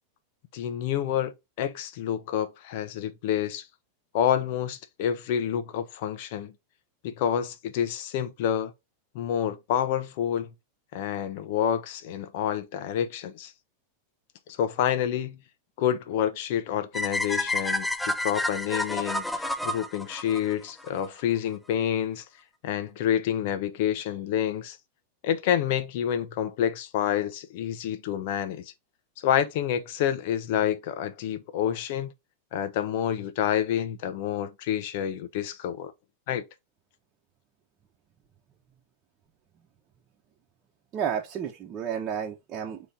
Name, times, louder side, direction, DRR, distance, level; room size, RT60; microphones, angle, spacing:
voice 1, 0.5-3.7 4.1-6.5 7.0-8.7 9.1-10.5 10.9-13.5 14.6-15.4 15.8-22.2 22.6-24.8 25.2-28.6 29.2-32.1 32.5-35.9 36.3-36.4, left 9 dB, 60° left, 0.8 m, -28 dB
sound 1, 16.9-21.1, left 2 dB, 5° left, 0.4 m, -29 dB
voice 2, 40.9-42.9, right 8 dB, 35° right, 0.9 m, -31 dB
4.0 x 3.1 x 3.7 m
hypercardioid pair, 115°, 0 cm